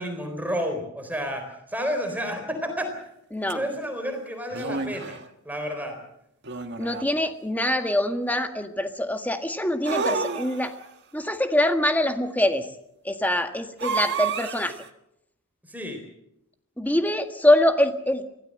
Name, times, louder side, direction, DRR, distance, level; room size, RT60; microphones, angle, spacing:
voice 1, 0.0-2.9 3.5-5.2 5.4-6.0 15.7-16.0, equal, 10° right, 5 dB, 4.0 m, -30 dB
voice 2, 3.3-3.6 6.8-10.7 11.1-12.7 13.0-14.7 16.8-18.3, left 1 dB, 10° left, 7 dB, 1.6 m, -24 dB
sound 1, 3.5-3.6 4.5-5.2 6.4-7.2 9.8-10.9 13.8-14.9, right 5 dB, 55° right, 1.7 m, -30 dB
24.5 x 17.0 x 7.7 m, 0.79 s
head